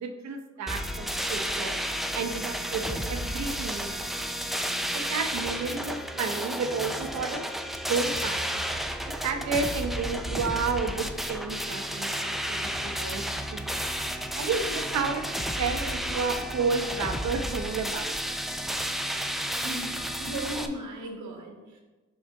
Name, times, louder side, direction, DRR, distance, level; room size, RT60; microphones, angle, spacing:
voice 1, 0.0-1.7 2.1-4.4 4.9-7.4 7.9-8.6 9.0-13.3 13.5-13.8 14.3-15.3 15.6-18.3, right 4 dB, 65° right, 6 dB, 0.9 m, -31 dB
sound 1, 0.7-20.7, equal, ahead, 0.5 m, -32 dB
voice 2, 19.6-21.8, right 1 dB, 85° right, 1 dB, 1.4 m, -36 dB
5.8 x 5.4 x 3.5 m, 1.2 s
cardioid pair, 90°, 30 cm